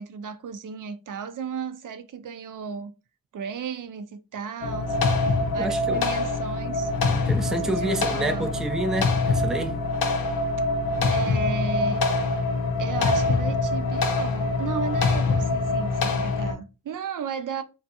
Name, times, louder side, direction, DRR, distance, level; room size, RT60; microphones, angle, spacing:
voice 1, 0.0-2.9 3.3-6.9 7.5-8.5 11.1-12.0 12.8-17.6, right 7 dB, 55° right, 0.5 m, -35 dB
sound 1, 4.6-16.5, left 3 dB, 70° left, 0.7 m, -24 dB
voice 2, 5.6-6.1 7.1-9.8, right 1 dB, ahead, 0.4 m, -29 dB
2.4 x 2.3 x 2.7 m
cardioid pair, 50°, 37 cm